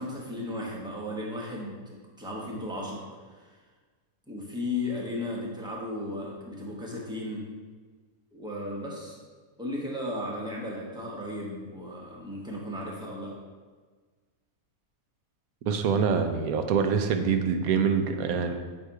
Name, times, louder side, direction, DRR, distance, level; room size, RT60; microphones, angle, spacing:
voice 1, 0.0-3.1 3.3-3.6 4.3-7.4 8.3-9.2 9.6-13.3, left 1 dB, 5° right, -4 dB, 0.9 m, -35 dB
voice 2, 15.7-18.6, right 6 dB, 80° right, 6 dB, 1.1 m, -25 dB
8.2 x 2.7 x 4.7 m, 1.4 s
omnidirectional pair, 1.5 m